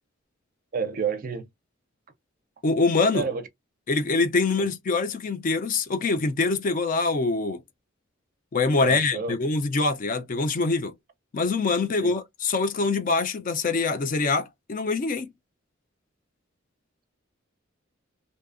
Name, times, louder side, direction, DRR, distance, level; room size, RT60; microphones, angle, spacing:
voice 1, 0.7-1.5 3.1-3.5 4.6-4.7 8.8-9.4 12.0-12.1, right 6 dB, 45° right, 0.5 m, -30 dB
voice 2, 2.6-3.3 3.9-7.6 8.5-10.9 11.3-15.3, left 3 dB, 45° left, 0.4 m, -24 dB
2.7 x 2.0 x 2.4 m
head